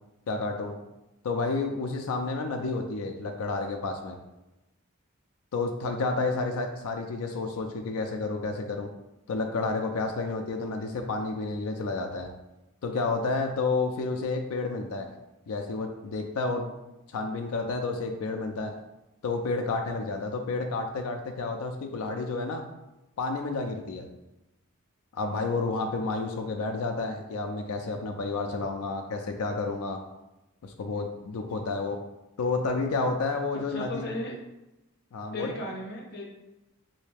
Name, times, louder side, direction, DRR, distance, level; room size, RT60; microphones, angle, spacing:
voice 1, 0.3-0.7 1.2-4.2 5.5-8.9 9.3-12.3 12.8-15.1 15.5-16.7 17.1-18.7 19.2-22.6 23.2-24.1 25.1-30.0 30.6-32.0 32.4-34.0 35.1-35.5, left 3 dB, 85° left, 3 dB, 0.4 m, -30 dB
voice 2, 33.7-34.4 35.3-36.2, left 1 dB, 50° left, -1 dB, 0.8 m, -35 dB
3.2 x 2.7 x 3.3 m, 0.95 s
head